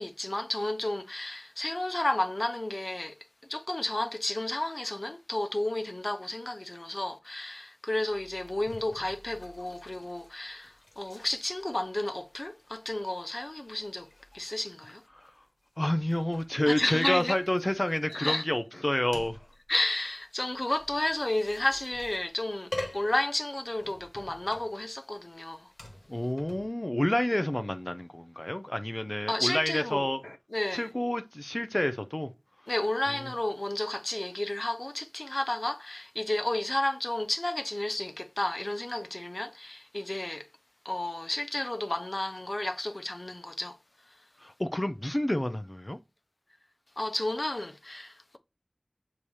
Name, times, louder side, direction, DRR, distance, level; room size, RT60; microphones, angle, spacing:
voice 1, 0.0-3.2 3.5-15.0 16.7-17.4 18.1-18.4 19.7-25.7 29.3-30.1 30.5-30.9 32.7-40.5 40.8-43.8 44.1-44.2 47.0-48.4, left 1 dB, 55° left, 0.8 m, -32 dB
sound 1, 8.1-26.7, left 1 dB, 75° left, 1.2 m, -47 dB
voice 2, 15.8-19.4 26.1-30.4 30.7-32.3 44.4-46.0, left 1 dB, 30° left, 0.5 m, -29 dB
7.0 x 2.8 x 4.8 m
wide cardioid pair, 40°, 0 cm